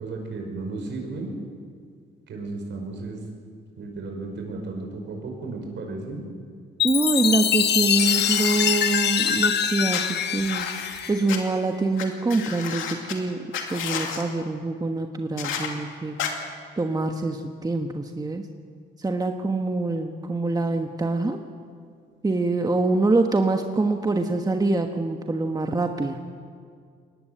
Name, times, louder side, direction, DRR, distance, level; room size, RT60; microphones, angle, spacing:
voice 1, 0.0-1.3 2.3-3.3 3.8-6.3, right 3 dB, 65° right, 2 dB, 5.5 m, -34 dB
Chime, 6.8-11.5, left 8 dB, 60° left, 1.2 m, -24 dB
voice 2, 6.8-10.7 11.1-16.1 16.8-18.4 19.0-21.4 22.2-26.2, right 3 dB, 20° right, 5 dB, 1.3 m, -25 dB
sound 1, 7.9-9.3 9.9-11.4 12.0-12.1 12.3-13.1 13.5-14.2 15.4-15.7 16.2-16.3, left 7 dB, 85° left, 2.5 m, -32 dB
21.5 x 19.0 x 7.9 m, 2.1 s
cardioid pair, 90°, 20 cm